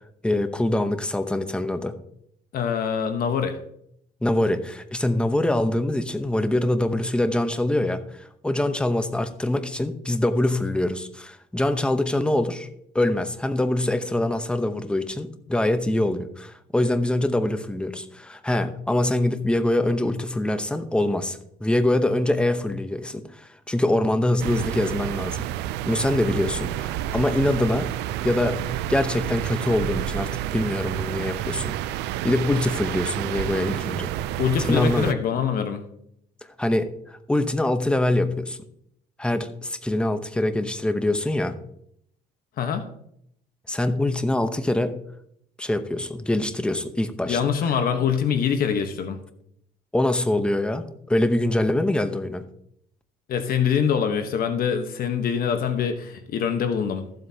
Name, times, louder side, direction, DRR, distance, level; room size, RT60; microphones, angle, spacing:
voice 1, 0.2-1.9 4.2-12.7 12.9-25.4 25.8-27.9 28.2-28.6 28.9-31.9 32.2-34.1 34.6-35.2 36.6-38.6 39.2-41.6 43.7-45.0 45.6-47.4 49.9-52.5, left 1 dB, 5° left, 9 dB, 0.9 m, -24 dB
voice 2, 2.5-3.6 34.4-35.8 42.6-42.8 47.3-49.2 53.3-57.0, left 7 dB, 60° left, 7 dB, 1.2 m, -24 dB
sound 1, 24.4-35.1, right 13 dB, 85° right, 0.5 m, -29 dB
14.5 x 7.9 x 2.8 m, 0.73 s
cardioid pair, 110°, 17 cm